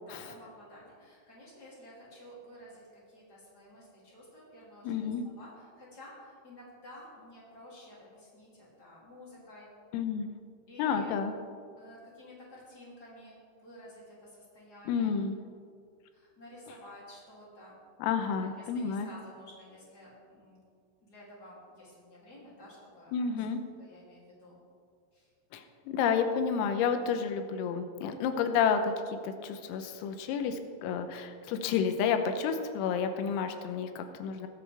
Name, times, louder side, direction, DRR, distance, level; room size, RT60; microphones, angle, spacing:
voice 1, 0.0-2.8 3.1-5.1 5.4-9.7 10.7-11.2 11.8-13.3 13.6-15.1 16.1-17.8 18.4-20.6 21.0-23.4 23.8-24.6 25.1-25.3, left 1 dB, 25° left, -6 dB, 2.3 m, -52 dB
voice 2, 4.9-5.2 9.9-10.3 10.8-11.3 14.9-15.4 18.0-19.1 23.1-23.6 25.5-34.5, left 6 dB, 85° left, 7 dB, 3.5 m, -30 dB
20.0 x 8.4 x 3.4 m, 2.1 s
omnidirectional pair, 5.9 m